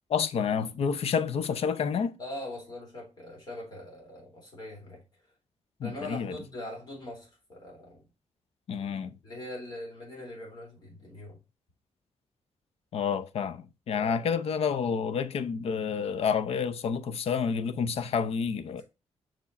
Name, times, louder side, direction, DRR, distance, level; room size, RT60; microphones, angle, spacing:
voice 1, 0.1-2.1 5.8-6.4 8.7-9.1 12.9-18.8, left 6 dB, 60° left, 0.6 m, -29 dB
voice 2, 2.2-5.0 5.8-8.1 9.2-11.4 13.9-14.3, left 1 dB, 40° left, 3.8 m, -42 dB
6.2 x 4.6 x 4.1 m
wide cardioid pair, 155°, 12 cm